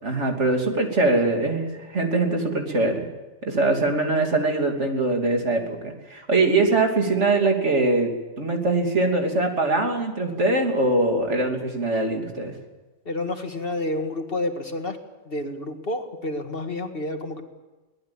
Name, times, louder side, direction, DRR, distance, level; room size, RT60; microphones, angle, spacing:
voice 1, 0.0-3.1 3.4-8.1 8.4-12.5, right 2 dB, 75° right, 3 dB, 3.3 m, -22 dB
voice 2, 13.1-15.0 15.3-17.4, left 2 dB, 55° left, 5 dB, 2.2 m, -29 dB
23.5 x 18.0 x 8.7 m, 1.2 s
omnidirectional pair, 1.2 m